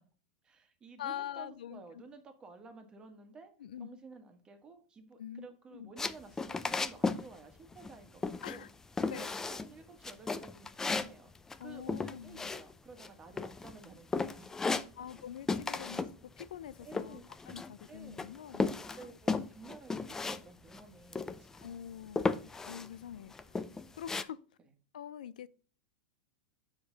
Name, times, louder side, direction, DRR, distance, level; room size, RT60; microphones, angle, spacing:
voice 1, 0.4-3.5 3.8-8.7 9.1-11.3 11.6-14.8 15.8-16.1 16.8-17.2 17.9-18.4 18.9-21.8, right 4 dB, 20° right, 1.4 m, -53 dB
voice 2, 1.0-2.0 3.6-3.9 5.2-5.9 8.4-8.7 9.1-9.3 11.6-12.5 14.6-16.1 16.4-19.1 21.6-23.5 24.0-24.4 24.9-25.5, left 10 dB, 90° left, 0.4 m, -45 dB
sound 1, 6.0-7.3 7.5-8.0 8.2-8.7 9.0-9.7 10.0-13.1 13.4-13.8 14.1-15.2 15.5-16.1 16.4-17.8 18.2-20.4 20.7-20.8 21.1-21.7 22.2-22.9 23.3-24.2, left 4 dB, 10° left, 0.4 m, -35 dB
7.1 x 5.2 x 3.9 m
supercardioid pair, 130°, 4 cm